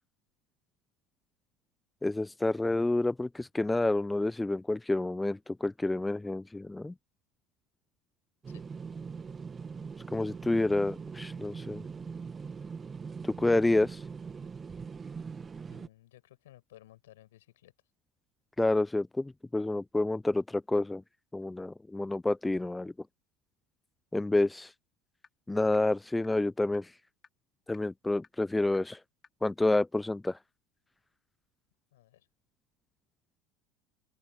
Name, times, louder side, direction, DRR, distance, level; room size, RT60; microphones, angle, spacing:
voice 1, 2.0-6.9 10.1-11.8 13.2-14.0 18.6-21.0 21.3-22.9 24.1-24.7 25.5-26.9 27.7-29.0 29.4-30.4, left 2 dB, 10° left, 0.3 m, -29 dB
sound 1, 8.4-15.9, right 5 dB, 25° right, 1.5 m, -42 dB
voice 2, 15.7-17.7 31.9-32.3, left 15 dB, 75° left, 7.0 m, -57 dB
sound 2, 25.2-25.3 25.7-25.8 26.2-26.3 26.7-26.8 27.2-27.3 27.7-27.8 28.2-28.3 28.7-28.8 29.2-29.3 29.7-29.8 30.2-30.3, left 6 dB, 30° left, 4.8 m, -55 dB
open air
hypercardioid pair, 75°, 0 cm